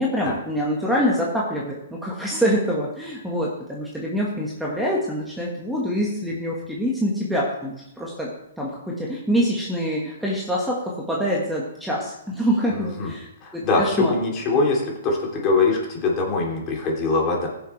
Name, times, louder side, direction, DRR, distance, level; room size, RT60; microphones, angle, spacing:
voice 1, 0.0-8.3 8.6-13.3 13.5-14.1, equal, ahead, -4 dB, 1.6 m, -25 dB
voice 2, 12.7-13.1 13.4-17.5, left 3 dB, 30° left, -1 dB, 3.0 m, -23 dB
15.5 x 7.0 x 3.3 m, 0.80 s
hypercardioid pair, 135°, 0 cm